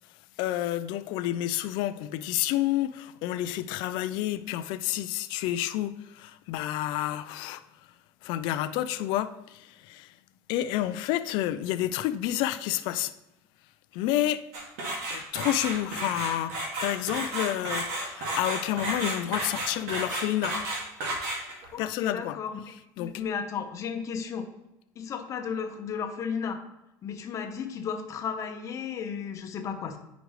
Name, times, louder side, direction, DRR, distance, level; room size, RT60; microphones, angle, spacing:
voice 1, 0.4-7.6 8.2-10.1 10.5-13.1 13.9-14.4 15.1-20.6 21.8-22.4 23.0-23.1, left 13 dB, 65° left, 0.4 m, -29 dB
sound 1, 14.5-21.7, right 1 dB, 80° right, 2.0 m, -32 dB
voice 2, 21.7-24.5 25.0-26.6 27.0-30.0, left 6 dB, 35° left, 0.9 m, -34 dB
9.2 x 5.1 x 3.1 m
cardioid pair, 135°, 9 cm